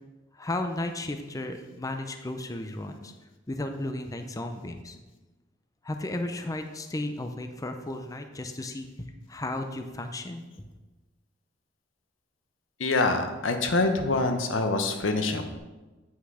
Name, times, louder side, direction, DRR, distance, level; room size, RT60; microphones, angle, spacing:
voice 1, 0.3-3.1 3.5-5.0 5.8-10.4, left 1 dB, 20° left, 6 dB, 0.5 m, -34 dB
voice 2, 12.8-15.6, left 3 dB, 90° left, 6 dB, 1.0 m, -25 dB
8.3 x 5.8 x 4.9 m, 1.2 s
head